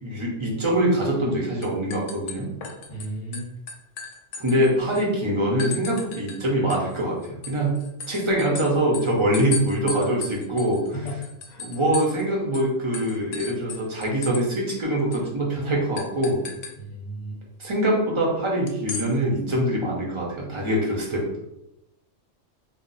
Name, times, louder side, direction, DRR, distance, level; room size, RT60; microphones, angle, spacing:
voice 1, 0.0-2.5 4.4-11.1 11.6-16.4 17.6-21.2, right 1 dB, 35° right, -3 dB, 0.5 m, -24 dB
sound 1, 1.0-1.3 1.6-3.0 3.3-5.0 5.6-6.4 6.7-12.2 12.5-12.7 12.9-14.4 14.7-14.8 15.1-15.3 16.0-16.7 18.7-19.1, left 5 dB, 75° left, 0.9 m, -36 dB
voice 2, 2.9-3.5 10.9-11.2 11.5-11.7 16.8-17.4, right 1 dB, 40° left, -3 dB, 0.9 m, -34 dB
2.5 x 2.0 x 3.8 m, 0.87 s
omnidirectional pair, 1.3 m